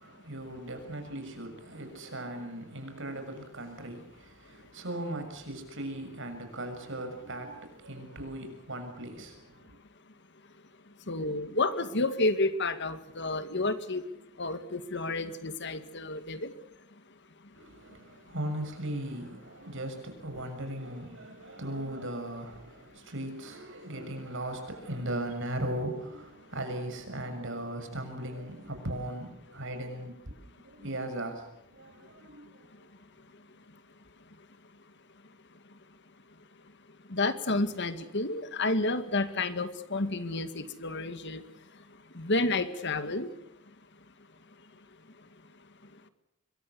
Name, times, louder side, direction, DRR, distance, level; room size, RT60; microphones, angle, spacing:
voice 1, 0.0-9.8 17.5-31.5 31.7-32.6, right 1 dB, 60° right, 6.7 m, -38 dB
voice 2, 11.1-14.0 14.4-16.5 37.1-41.4 42.2-43.3, left 2 dB, 55° left, 2.0 m, -30 dB
26.0 x 23.0 x 6.9 m
head